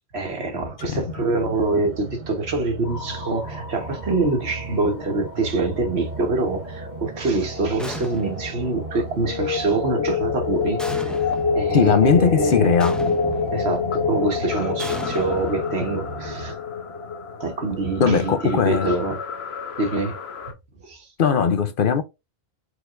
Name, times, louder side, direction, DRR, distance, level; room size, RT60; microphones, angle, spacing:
voice 1, 0.1-11.1 11.5-12.7 13.5-16.6 17.4-19.2 19.8-20.2 20.8-21.0, right 3 dB, 80° right, 1.7 m, -25 dB
sound 1, 0.8-16.6, right 4 dB, 50° right, 0.8 m, -37 dB
sound 2, 2.9-20.5, left 5 dB, 75° left, 1.1 m, -29 dB
sound 3, 7.8-8.5 10.8-11.6 12.8-13.6 14.8-16.0, equal, ahead, 0.6 m, -36 dB
voice 2, 11.7-13.0 18.0-18.9 21.2-22.0, left 6 dB, 60° left, 0.8 m, -19 dB
4.8 x 4.1 x 2.5 m
omnidirectional pair, 1.1 m